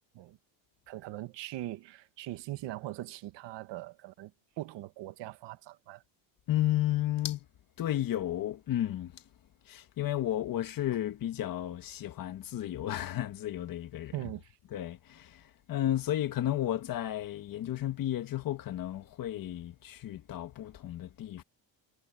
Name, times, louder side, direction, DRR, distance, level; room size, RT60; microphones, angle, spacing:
voice 1, 0.9-6.0 14.1-14.6, right 16 dB, 75° right, 1.5 m, -41 dB
voice 2, 6.5-7.5 7.8-9.2 9.7-14.1 14.7-21.4, left 13 dB, 50° left, 1.8 m, -33 dB
cardioid pair, 160°, 43 cm